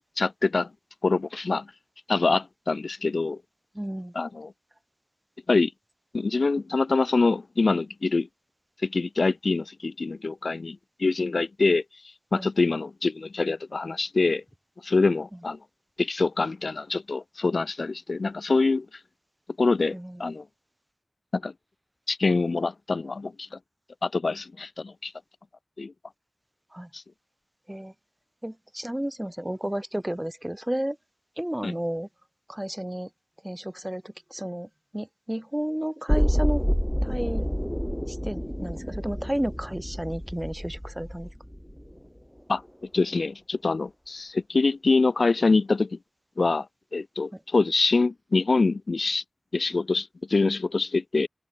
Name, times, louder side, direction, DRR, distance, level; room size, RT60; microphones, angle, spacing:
voice 1, 0.2-0.7 1.0-1.7 2.1-3.4 4.1-4.5 5.5-5.7 6.1-8.3 8.8-11.8 12.3-14.4 14.8-15.6 16.0-18.9 19.6-20.4 21.3-21.5 22.1-23.5 24.0-25.1 25.8-25.9 26.9-27.0 31.6-31.7 42.5-42.6 42.9-46.0 46.4-46.7 46.9-49.2 49.5-51.3, left 3 dB, 85° left, 1.5 m, -25 dB
voice 2, 3.7-4.1 12.3-12.5 19.9-20.3 26.7-26.9 27.7-27.9 28.4-31.0 31.4-32.1 32.5-33.1 33.4-36.6 37.0-37.5 38.1-41.3, right 1 dB, 15° right, 3.1 m, -32 dB
sound 1, 36.1-42.1 42.4-42.5, equal, 5° left, 0.9 m, -28 dB
wide cardioid pair, 50°, 0 cm